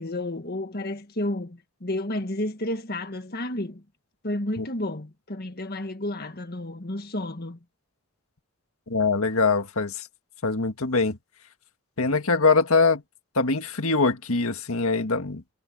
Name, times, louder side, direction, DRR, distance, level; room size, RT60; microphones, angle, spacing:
voice 1, 0.0-3.8 4.2-7.6, left 1 dB, 45° left, 1.8 m, -31 dB
voice 2, 8.9-10.0 10.4-11.2 12.0-13.0 13.3-15.4, left 4 dB, 70° left, 1.8 m, -23 dB
head